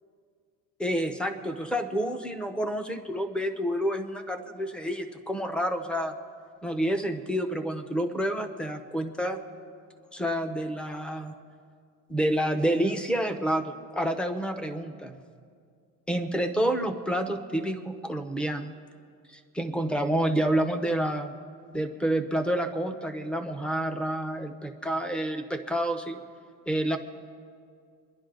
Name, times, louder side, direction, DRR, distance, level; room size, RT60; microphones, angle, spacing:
voice 1, 0.8-6.1 6.6-9.4 10.1-11.3 12.1-15.2 16.1-18.7 19.3-21.3 21.7-26.2 26.7-27.0, right 1 dB, 5° left, 7 dB, 0.8 m, -29 dB
26.5 x 11.0 x 3.8 m, 2.2 s
cardioid pair, 155°, 33 cm